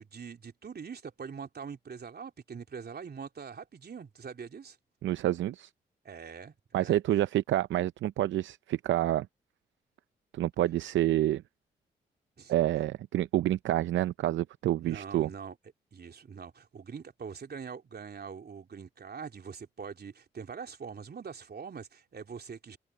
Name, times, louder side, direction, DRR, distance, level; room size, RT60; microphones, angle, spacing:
voice 1, 0.0-4.8 6.0-7.0 12.4-12.5 14.8-15.6 15.9-22.8, right 6 dB, 55° right, 3.4 m, -43 dB
voice 2, 5.0-5.7 6.7-9.3 10.3-11.4 12.5-15.3, right 13 dB, 75° right, 0.6 m, -28 dB
open air
hypercardioid pair, 40°, 20 cm